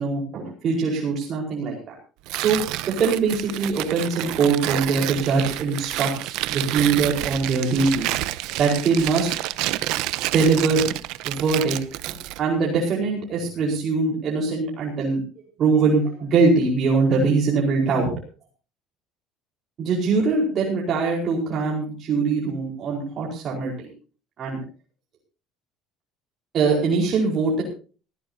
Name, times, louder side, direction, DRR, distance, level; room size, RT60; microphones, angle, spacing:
voice 1, 0.0-1.9 2.3-2.6 2.9-8.1 8.6-9.3 10.3-10.9 11.2-11.8 12.1-15.2 15.6-18.1 19.8-23.9 24.4-24.6 26.5-27.6, right 4 dB, 40° right, -1 dB, 4.8 m, -22 dB
Tearing, 2.3-12.4, right 16 dB, 70° right, 0.9 m, -29 dB
19.0 x 16.0 x 2.8 m, 0.37 s
cardioid pair, 140°, 0 cm